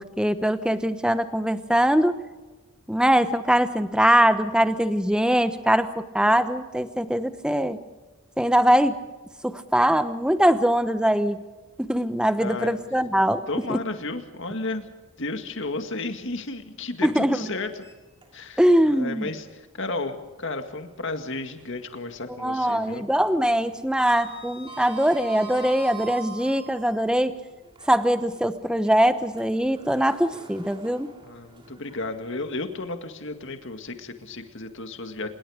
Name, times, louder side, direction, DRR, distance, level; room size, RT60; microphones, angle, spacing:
voice 1, 0.0-2.1 2.9-7.8 8.4-8.9 9.4-11.4 11.8-13.4 13.7-13.8 17.0-17.4 18.6-19.3 22.4-27.4 27.9-31.1, equal, 5° right, 11 dB, 0.9 m, -22 dB
voice 2, 12.4-12.8 13.5-14.9 15.2-17.8 18.3-23.1 31.2-35.3, left 2 dB, 55° left, 7 dB, 2.0 m, -33 dB
Sliding door, 17.7-18.7 19.1-19.2 20.9-22.0 22.2-22.6 22.9-27.0 27.6-32.8, right 4 dB, 20° right, 3.0 m, -44 dB
26.0 x 21.5 x 5.0 m, 1.2 s
head